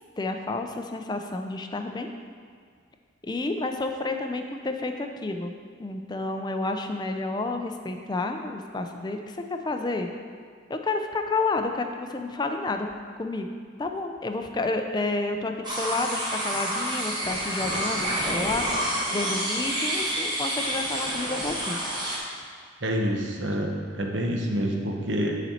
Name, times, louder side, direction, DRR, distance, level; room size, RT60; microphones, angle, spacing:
voice 1, 0.2-2.1 3.2-5.5 5.8-10.1 10.7-12.9 13.2-13.5 13.8-21.8, left 2 dB, 20° left, 5 dB, 0.4 m, -30 dB
sound 1, 15.6-22.2, equal, 20° right, 1.1 m, -28 dB
voice 2, 22.8-25.4, equal, 60° right, 1 dB, 0.9 m, -27 dB
10.0 x 4.1 x 4.3 m, 2.1 s
head